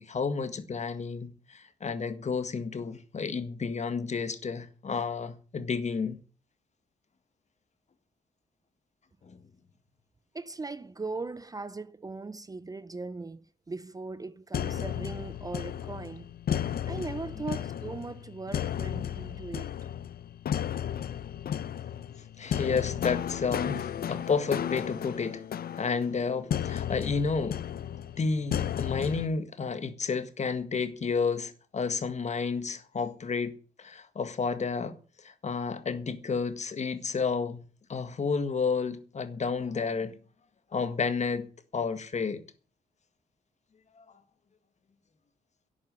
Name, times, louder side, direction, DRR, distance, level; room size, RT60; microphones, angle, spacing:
voice 1, 0.0-6.2 9.2-9.4 22.4-25.4 25.8-27.6 28.1-34.9 35.2-37.6 37.9-40.2 40.7-42.4 44.0-44.1, left 5 dB, 45° left, 1.8 m, -31 dB
voice 2, 10.3-16.3 16.6-19.7, right 3 dB, 20° right, 0.6 m, -39 dB
sound 1, 14.5-29.3, left 9 dB, 65° left, 0.7 m, -34 dB
11.5 x 8.6 x 10.0 m
wide cardioid pair, 130°, 17 cm